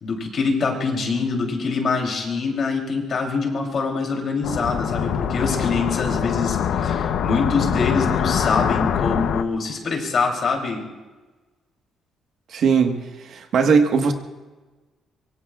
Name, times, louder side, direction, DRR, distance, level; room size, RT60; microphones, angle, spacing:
voice 1, 0.0-10.8, left 4 dB, 40° left, 1 dB, 3.2 m, -24 dB
sound 1, 4.4-9.4, left 8 dB, 60° left, 0.8 m, -23 dB
voice 2, 12.5-14.1, right 5 dB, 55° right, 4 dB, 1.4 m, -19 dB
25.0 x 23.5 x 2.4 m, 1.2 s
cardioid pair, 170°, 0 cm